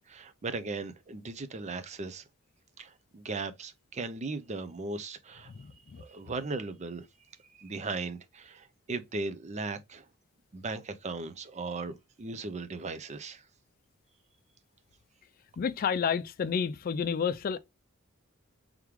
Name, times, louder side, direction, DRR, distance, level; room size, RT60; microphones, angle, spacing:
voice 1, 0.1-2.2 2.8-5.5 6.0-7.1 7.6-10.0 10.5-13.4, right 3 dB, 35° right, 0.5 m, -37 dB
voice 2, 15.6-17.6, left 6 dB, 45° left, 0.3 m, -30 dB
3.5 x 3.1 x 3.5 m
head